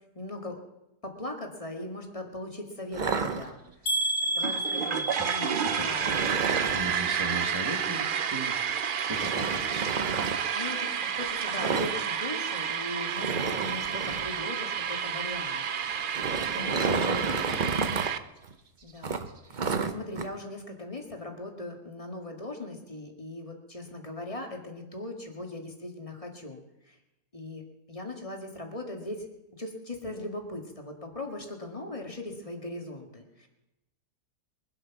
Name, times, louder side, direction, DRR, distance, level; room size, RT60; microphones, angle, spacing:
voice 1, 0.2-0.6 1.0-3.6 3.8-6.4 10.6-15.6 16.5-17.4 18.8-27.0 27.3-27.6 27.9-29.3 29.6-33.5, left 1 dB, 20° left, 2 dB, 2.0 m, -39 dB
sound 1, 2.9-4.0 6.0-6.9 9.1-10.3 11.6-12.0 12.2-12.4 12.7-12.8 13.2-14.3 15.9-18.1 18.4-18.5 19.0-20.2, right 4 dB, 35° right, 0.8 m, -31 dB
sound 2, 3.9-7.8 8.1-8.7 9.2-9.3 9.7-9.8, right 1 dB, 45° left, 2.2 m, -33 dB
sound 3, 4.4-18.2, right 7 dB, 75° right, 0.4 m, -30 dB
voice 2, 5.5-6.2 6.6-8.6 9.0-9.9 16.8-17.1 17.5-17.6, right 2 dB, 15° right, 4 dB, 1.9 m, -37 dB
23.0 x 8.0 x 6.0 m, 0.93 s
omnidirectional pair, 1.7 m